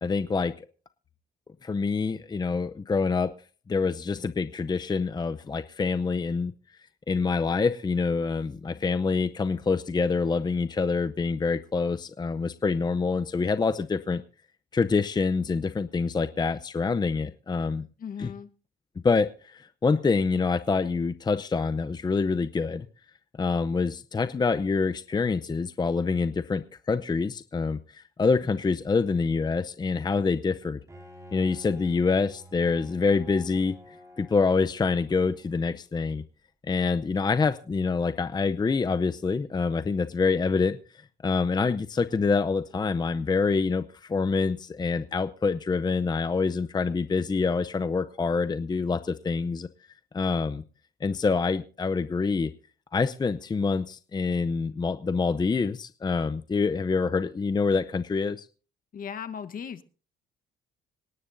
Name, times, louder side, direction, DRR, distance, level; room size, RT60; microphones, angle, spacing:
voice 1, 0.0-0.7 1.6-3.3 3.7-6.5 7.1-14.2 14.7-17.9 18.2-18.3 19.0-22.9 23.4-30.8 31.3-33.8 34.2-36.2 36.7-40.8 41.2-49.7 50.1-50.6 51.0-52.5 52.9-58.5, left 4 dB, 25° left, 0.6 m, -26 dB
voice 2, 18.0-18.5 58.9-59.8, left 7 dB, 50° left, 1.2 m, -37 dB
Bowed string instrument, 30.9-35.7, equal, 15° right, 4.7 m, -50 dB
26.5 x 11.0 x 2.6 m
cardioid pair, 85°, 18 cm